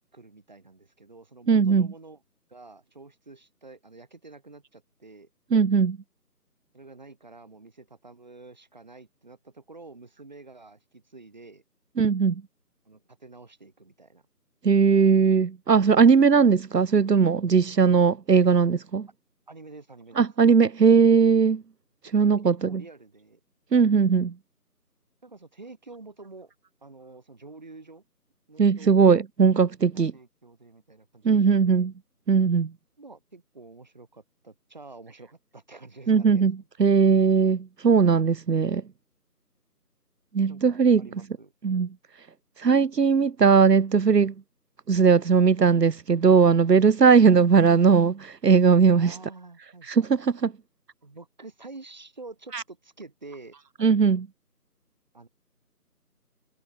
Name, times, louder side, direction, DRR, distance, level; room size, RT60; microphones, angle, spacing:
voice 1, 0.1-2.2 2.5-5.3 6.7-11.6 12.9-14.2 19.5-20.3 22.2-23.4 25.2-26.5 26.8-28.0 28.5-29.1 29.9-31.8 33.0-36.7 40.5-41.5 49.0-50.1 51.0-53.6 55.1-55.3, right 3 dB, 25° right, 7.4 m, -48 dB
voice 2, 1.5-1.9 5.5-6.0 12.0-12.3 14.6-19.1 20.2-21.6 22.1-22.8 23.7-24.3 28.6-30.1 31.2-31.9 32.3-32.7 36.1-38.8 40.3-41.0 41.6-41.9 42.6-44.3 44.9-49.1 49.9-50.5 52.5-52.6 53.8-54.3, right 5 dB, 85° right, 0.9 m, -19 dB
figure-of-eight pair, 175°, 48 cm